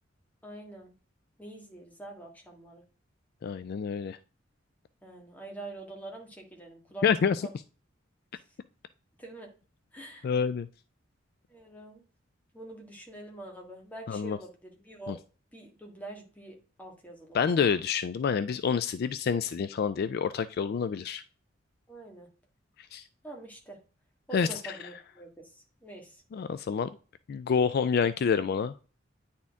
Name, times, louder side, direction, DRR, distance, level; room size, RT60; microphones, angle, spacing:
voice 1, 0.4-0.9 1.4-2.8 5.0-7.1 7.4-7.5 9.2-9.5 9.9-10.3 11.5-12.0 12.5-15.2 15.5-17.7 21.9-22.3 23.2-23.8 24.3-25.3 25.8-26.2, right 2 dB, 10° left, 1 dB, 1.7 m, -45 dB
voice 2, 3.4-4.2 7.0-7.5 10.2-10.7 14.1-14.4 15.1-15.2 17.3-21.2 22.9-23.0 24.3-24.7 26.3-26.9 27.3-28.7, left 6 dB, 55° left, 14 dB, 0.3 m, -28 dB
9.6 x 4.3 x 3.5 m, 0.37 s
head